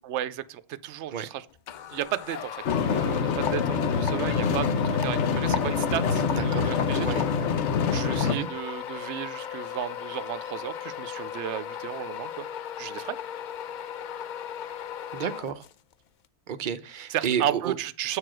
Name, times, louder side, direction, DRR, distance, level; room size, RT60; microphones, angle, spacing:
voice 1, 0.0-1.5 1.9-7.2 7.8-12.5 12.8-13.2 17.1-18.2, right 12 dB, 75° right, 0.9 m, -34 dB
sound 1, 1.7-15.9, left 9 dB, 60° left, 0.5 m, -37 dB
sound 2, 2.7-8.4, left 5 dB, 80° left, 1.1 m, -25 dB
voice 2, 6.3-6.7 7.0-7.2 8.2-8.5 15.1-15.6 16.5-17.7, right 8 dB, 50° right, 0.7 m, -31 dB
8.3 x 4.8 x 6.0 m
omnidirectional pair, 1.2 m